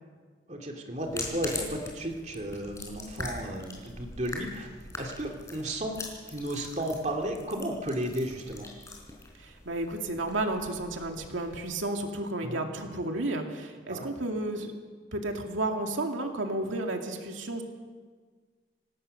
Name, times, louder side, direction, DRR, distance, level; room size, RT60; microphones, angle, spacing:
voice 1, 0.5-4.7 4.9-6.0 6.3-8.7 12.4-12.6 13.9-14.1, right 1 dB, 35° right, 2 dB, 2.4 m, -34 dB
sound 1, 1.0-11.7, left 2 dB, 15° left, 4.5 m, -42 dB
voice 2, 9.4-14.7 15.1-17.6, right 2 dB, 85° right, 3 dB, 2.3 m, -32 dB
26.0 x 18.0 x 6.6 m, 1.5 s
head